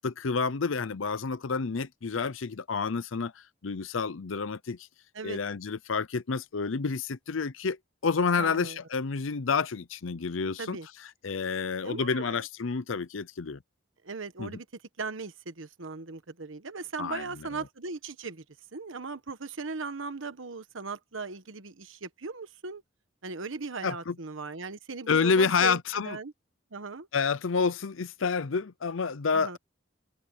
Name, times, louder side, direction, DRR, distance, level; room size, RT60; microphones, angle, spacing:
voice 1, 0.0-4.9 5.2-7.8 8.0-10.8 11.2-13.6 14.4-14.6 17.0-17.2 23.8-24.1 25.1-26.2 27.1-29.6, left 5 dB, 85° left, 0.7 m, -29 dB
voice 2, 8.4-8.8 10.6-10.9 11.8-12.4 14.0-14.7 15.0-18.4 18.7-22.8 23.2-26.3 26.7-27.1 29.3-29.6, right 4 dB, 85° right, 1.3 m, -38 dB
head